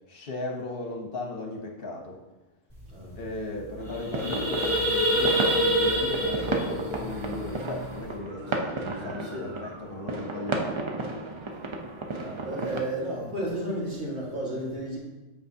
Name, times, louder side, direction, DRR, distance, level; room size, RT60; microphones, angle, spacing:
voice 1, 0.1-2.2 3.2-10.8, left 2 dB, 55° left, 1 dB, 0.9 m, -36 dB
sound 1, 2.8-2.9 3.2-3.4 3.7-8.1, equal, 10° left, 2.2 m, -26 dB
voice 2, 2.9-3.2 9.2-9.5 12.2-15.0, right 1 dB, 65° right, -4 dB, 1.9 m, -32 dB
sound 2, 3.8-12.8, right 3 dB, 45° right, 0.4 m, -34 dB
7.8 x 4.9 x 2.7 m, 1.1 s
omnidirectional pair, 1.2 m